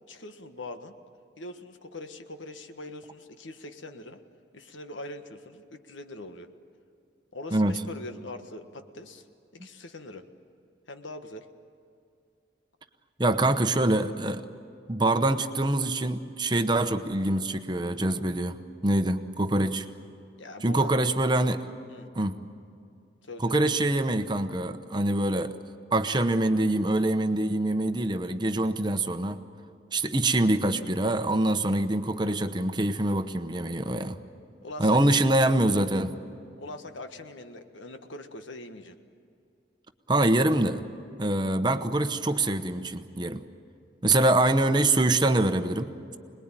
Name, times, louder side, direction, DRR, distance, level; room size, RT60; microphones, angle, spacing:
voice 1, 0.1-0.9 1.4-4.2 4.5-6.5 7.3-9.3 9.5-10.3 10.9-11.5 13.2-13.4 20.4-20.9 21.9-22.1 23.3-23.6 34.6-35.2 36.6-39.0, left 2 dB, 80° left, 7 dB, 1.5 m, -42 dB
voice 2, 13.2-14.5 14.9-19.9 20.6-21.6 22.1-22.4 23.4-25.6 25.9-29.4 29.9-34.2 34.8-36.1 40.1-40.8 41.2-43.4 44.0-46.2, right 1 dB, 25° right, 8 dB, 0.9 m, -25 dB
26.5 x 20.5 x 9.0 m, 2.5 s
head